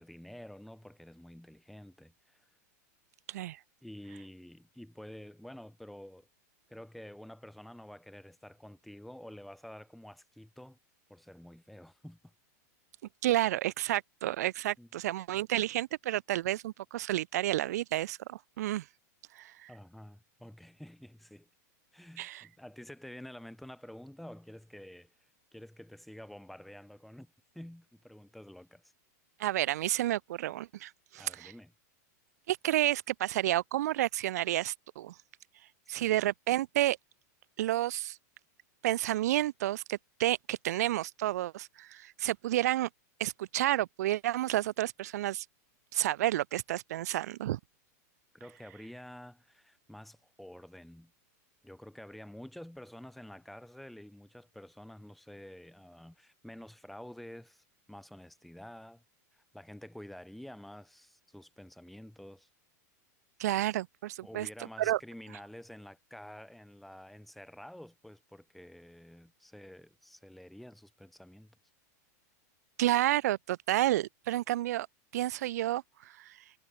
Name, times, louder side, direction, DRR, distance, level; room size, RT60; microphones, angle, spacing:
voice 1, 0.0-2.5 3.8-6.3 6.7-10.8 11.1-12.3 14.8-14.9 19.7-21.5 21.9-25.1 25.5-28.9 31.2-31.7 36.0-36.1 48.3-51.1 51.6-59.0 59.3-62.5 64.2-71.6, left 1 dB, ahead, 3.8 m, -49 dB
voice 2, 13.2-18.8 19.3-19.7 22.2-22.4 29.4-31.5 32.5-35.1 35.9-37.0 37.6-38.2 38.8-42.9 43.2-45.4 45.9-47.6 63.4-64.5 64.8-65.0 72.8-74.9 75.1-75.8 76.2-76.3, right 14 dB, 70° right, 0.9 m, -30 dB
supercardioid pair, 160°, 9 cm